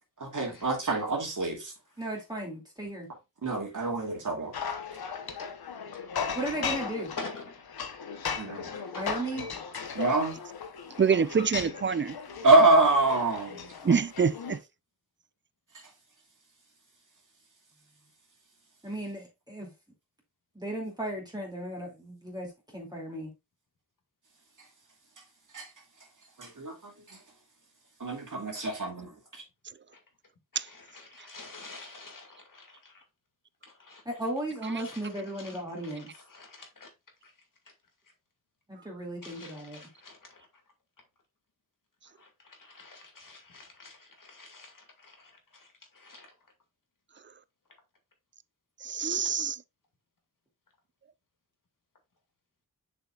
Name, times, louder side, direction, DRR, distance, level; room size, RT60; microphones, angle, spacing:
voice 1, 0.2-1.7 3.4-4.5 8.4-8.7 9.9-10.4 12.4-13.7 25.5-25.7 26.4-26.7 27.1-27.2 28.0-29.1, right 2 dB, 55° right, 2.4 m, -25 dB
voice 2, 2.0-3.1 6.3-7.1 8.9-9.5 18.8-19.7 20.5-23.3 34.0-36.1 38.7-39.8, right 1 dB, 10° right, 2.5 m, -35 dB
sound 1, 4.5-14.6, left 6 dB, 90° left, 1.0 m, -37 dB
voice 3, 7.2-7.9 8.3-9.0 28.5-28.8 30.7-33.0 33.8-34.0 34.8-35.0 35.4-35.5 35.8-36.0 36.3-36.9 37.2-37.3 39.2-40.4 42.2-45.7 45.9-46.3, left 3 dB, 60° left, 2.2 m, -47 dB
voice 4, 11.0-12.2 13.8-14.6 30.6-30.7 48.8-49.6, right 6 dB, 35° right, 0.4 m, -26 dB
6.8 x 5.8 x 2.4 m
cardioid pair, 60°, 36 cm